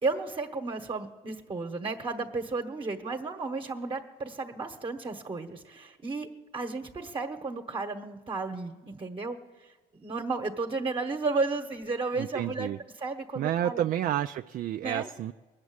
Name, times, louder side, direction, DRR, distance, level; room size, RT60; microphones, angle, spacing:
voice 1, 0.0-9.7 10.0-12.7 13.0-13.9 14.8-15.1, right 3 dB, 30° right, 4 dB, 1.1 m, -33 dB
voice 2, 12.2-12.8 13.4-15.3, right 11 dB, 55° right, 8 dB, 0.4 m, -30 dB
20.5 x 7.4 x 9.6 m, 1.3 s
cardioid pair, 110°, 17 cm